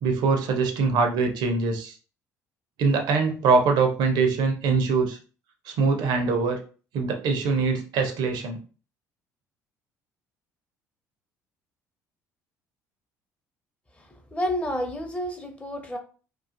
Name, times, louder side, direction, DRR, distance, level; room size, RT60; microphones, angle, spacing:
voice 1, 0.0-2.0 2.8-5.2 5.7-6.6 6.9-8.6, right 4 dB, 55° right, 4 dB, 0.5 m, -23 dB
voice 2, 14.3-16.0, equal, 15° left, 4 dB, 0.6 m, -29 dB
2.4 x 2.3 x 2.4 m, 0.37 s
figure-of-eight pair, 55°, 9 cm